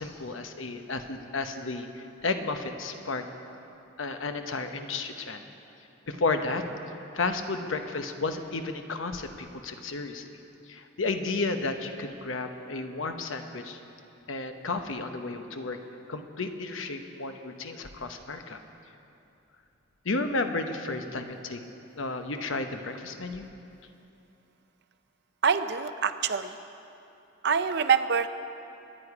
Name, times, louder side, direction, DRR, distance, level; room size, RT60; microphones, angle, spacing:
voice 1, 0.0-3.3 4.0-5.5 6.1-6.6 7.1-10.2 10.7-13.8 14.3-15.8 16.1-18.6 20.0-21.6 22.0-23.5, left 3 dB, 75° left, 6 dB, 1.0 m, -32 dB
voice 2, 25.4-26.6 27.4-28.3, right 6 dB, 55° right, 11 dB, 0.6 m, -25 dB
23.5 x 10.0 x 4.9 m, 2.8 s
head